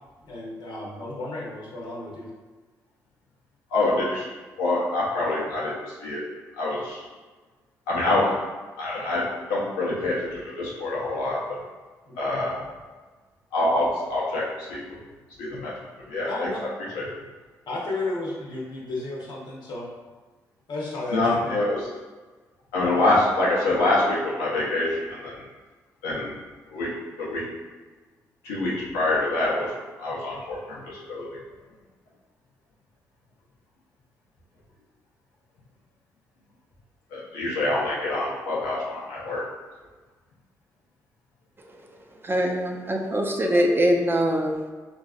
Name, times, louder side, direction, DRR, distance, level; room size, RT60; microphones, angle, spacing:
voice 1, 0.3-2.3 16.2-16.6 17.7-19.8 20.7-21.6, left 2 dB, 65° left, -4 dB, 1.0 m, -33 dB
voice 2, 3.7-4.3 4.6-6.2 6.6-7.0 7.9-8.3 8.8-11.6 12.2-12.6 13.5-14.9 15.4-15.7 16.1-16.5 16.8-17.1 21.1-21.8 22.7-25.5 26.0-26.3 26.7-26.9 27.2-27.5 28.4-29.7 30.0-31.4 37.1-39.4, left 2 dB, 90° left, -6 dB, 0.8 m, -26 dB
voice 3, 42.2-44.7, equal, 30° right, 1 dB, 0.6 m, -23 dB
3.9 x 2.5 x 2.4 m, 1.3 s
hypercardioid pair, 50°, 8 cm